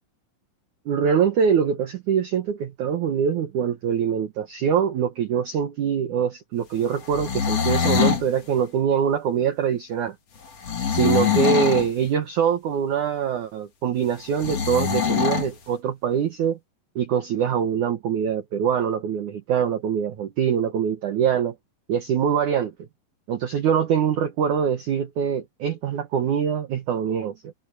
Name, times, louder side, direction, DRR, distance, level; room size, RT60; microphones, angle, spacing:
voice 1, 0.9-10.2 10.9-16.6 17.0-21.5 21.9-22.7 23.3-27.5, right 7 dB, 85° right, 1.7 m, -24 dB
sound 1, 7.0-8.3 10.6-11.9 14.4-15.5, left 7 dB, 40° left, 2.8 m, -23 dB
omnidirectional pair, 5.6 m